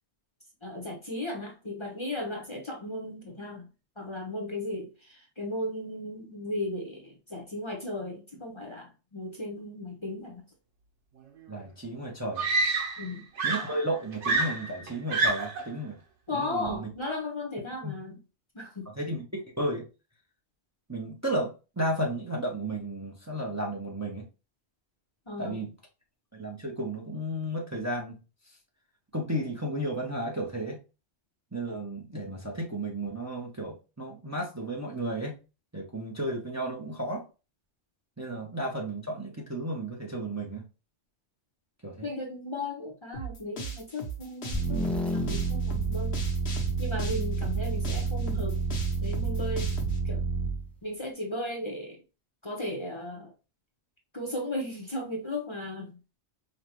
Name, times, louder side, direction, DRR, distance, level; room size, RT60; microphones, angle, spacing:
voice 1, 0.6-3.7 4.0-10.4 13.0-13.3 16.3-18.2 18.5-18.9 25.3-25.7 42.0-46.2 46.8-48.6 49.0-49.8 50.0-50.3 50.8-52.0 52.4-53.3 54.1-56.0, left 1 dB, 25° left, 1.0 m, -36 dB
voice 2, 11.5-12.5 13.4-16.0 16.3-16.9 17.8-18.0 19.0-19.9 20.9-24.3 25.4-25.7 26.4-28.2 29.1-30.8 31.5-35.4 35.7-37.2 38.2-40.7 41.8-42.1, right 1 dB, 15° right, 0.8 m, -33 dB
Screaming, 11.5-11.6 12.4-13.1 13.4-15.7 16.7-16.9, right 3 dB, 85° right, 1.3 m, -28 dB
sound 1, 43.1-50.0, right 3 dB, 70° left, 1.4 m, -38 dB
sound 2, 44.5-50.7, right 4 dB, ahead, 0.4 m, -29 dB
5.3 x 2.4 x 3.0 m
omnidirectional pair, 1.1 m